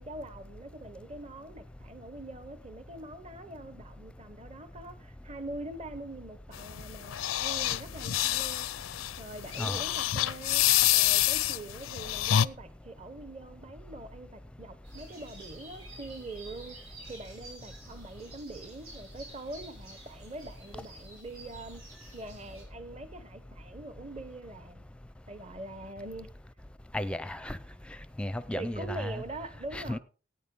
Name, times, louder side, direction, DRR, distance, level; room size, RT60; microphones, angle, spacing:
voice 1, 0.0-10.7 10.9-24.8 25.3-26.3 28.6-30.0, right 2 dB, 30° right, 0.9 m, -44 dB
sound 1, 6.5-12.4, left 12 dB, 75° left, 0.5 m, -27 dB
sound 2, 14.8-22.6, right 2 dB, 90° right, 6.4 m, -51 dB
voice 2, 26.9-27.6 28.2-29.2 29.7-30.0, left 1 dB, 5° left, 0.5 m, -34 dB
17.0 x 9.2 x 3.7 m
head